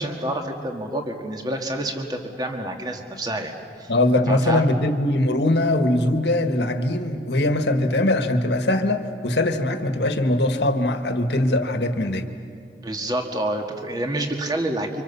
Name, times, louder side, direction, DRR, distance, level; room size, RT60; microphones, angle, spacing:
voice 1, 0.0-3.5 3.8-3.9 4.3-4.7 12.8-15.0, right 1 dB, 25° right, 3 dB, 1.8 m, -28 dB
voice 2, 3.9-12.3, left 1 dB, 75° left, 6 dB, 1.7 m, -21 dB
29.5 x 25.5 x 7.0 m, 2.4 s
head